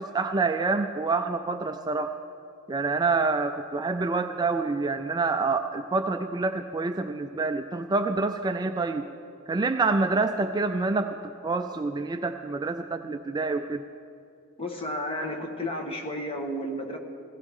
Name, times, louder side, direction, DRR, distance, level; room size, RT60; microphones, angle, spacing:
voice 1, 0.0-2.1 2.7-9.1 9.5-11.2 11.4-13.8, right 3 dB, 20° right, 7 dB, 0.3 m, -27 dB
voice 2, 14.6-17.0, left 1 dB, 25° left, 2 dB, 1.3 m, -32 dB
16.5 x 15.5 x 3.6 m, 2.5 s
head